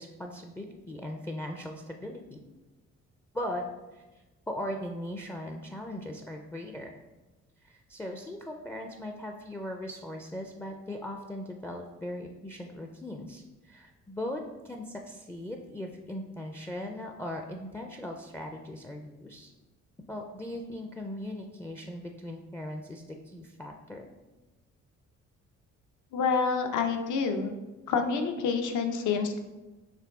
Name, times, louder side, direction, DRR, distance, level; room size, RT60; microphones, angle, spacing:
voice 1, 0.0-2.4 3.3-3.6 3.9-7.0 7.6-19.5 20.1-24.1, left 1 dB, 10° left, 3 dB, 0.3 m, -39 dB
voice 2, 26.1-27.5 27.9-29.4, left 5 dB, 75° left, 5 dB, 0.6 m, -28 dB
4.8 x 3.1 x 3.5 m, 1.1 s
cardioid pair, 90°, 30 cm